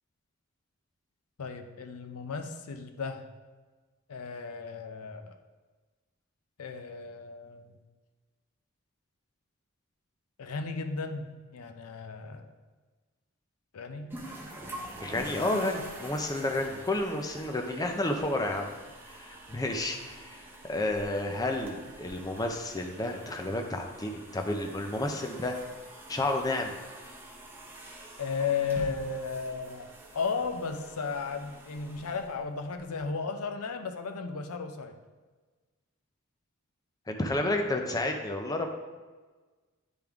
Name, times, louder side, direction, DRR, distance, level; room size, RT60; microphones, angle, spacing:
voice 1, 1.4-3.3 4.1-5.3 6.6-7.8 10.4-12.5 13.7-14.2 28.2-29.9 30.1-35.0, left 5 dB, 85° left, 6 dB, 0.6 m, -35 dB
sound 1, 14.1-33.0, right 1 dB, 10° right, 0.8 m, -46 dB
voice 2, 15.0-18.7 19.1-25.6 26.1-26.8 37.1-38.7, left 2 dB, 15° left, 3 dB, 0.5 m, -31 dB
10.0 x 3.5 x 3.5 m, 1.3 s
head